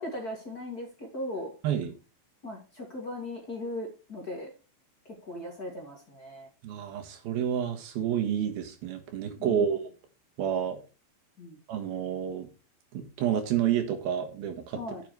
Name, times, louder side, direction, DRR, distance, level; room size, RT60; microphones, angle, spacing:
voice 1, 0.0-1.5 2.4-4.5 5.3-6.5 9.4-9.7 11.4-11.6 14.8-15.0, left 1 dB, 30° left, -1 dB, 2.4 m, -38 dB
voice 2, 6.6-9.9 10.4-10.8 11.7-12.5 12.9-14.8, right 9 dB, 80° right, 6 dB, 3.5 m, -29 dB
10.5 x 7.1 x 4.7 m, 0.32 s
omnidirectional pair, 4.2 m